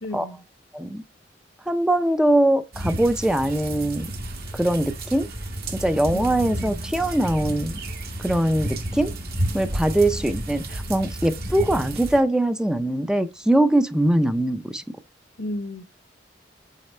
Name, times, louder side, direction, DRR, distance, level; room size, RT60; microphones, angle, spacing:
voice 1, 0.0-0.4 6.1-6.8 15.4-15.8, left 1 dB, 70° left, 0.9 m, -33 dB
voice 2, 1.7-4.1 4.5-5.3 5.7-7.8 8.2-9.1 9.5-14.8, right 1 dB, 5° right, 0.5 m, -22 dB
sound 1, 2.7-12.2, right 1 dB, 60° right, 1.4 m, -31 dB
6.6 x 4.1 x 4.2 m
head